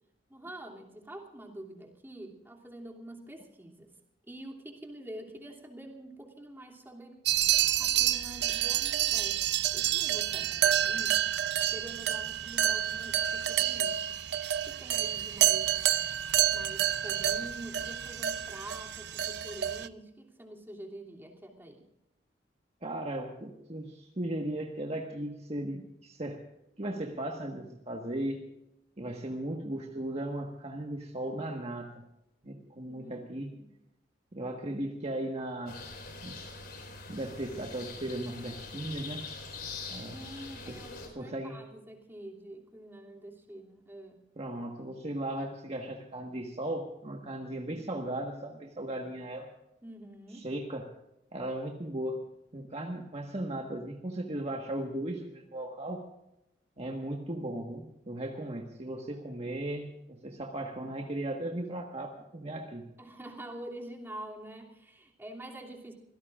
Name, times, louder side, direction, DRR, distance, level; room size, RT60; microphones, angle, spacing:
voice 1, 0.3-3.9 4.3-7.2 7.8-11.2 11.7-14.2 14.6-15.8 16.5-21.9 32.9-33.7 40.1-44.2 49.8-50.5 63.0-65.9, right 1 dB, 15° right, -1 dB, 2.8 m, -46 dB
sound 1, 7.3-19.9, right 11 dB, 70° right, 0.6 m, -29 dB
voice 2, 22.8-26.4 26.8-28.5 29.0-31.9 32.4-33.5 34.3-35.8 36.2-36.4 37.1-39.2 39.9-40.2 41.2-41.6 44.4-49.5 50.4-50.9 51.3-52.2 52.5-56.0 56.8-62.9, right 1 dB, 35° right, 1 dB, 1.5 m, -36 dB
sound 2, 35.7-41.1, left 4 dB, 60° left, 4.4 m, -43 dB
26.0 x 17.0 x 2.5 m, 0.85 s
head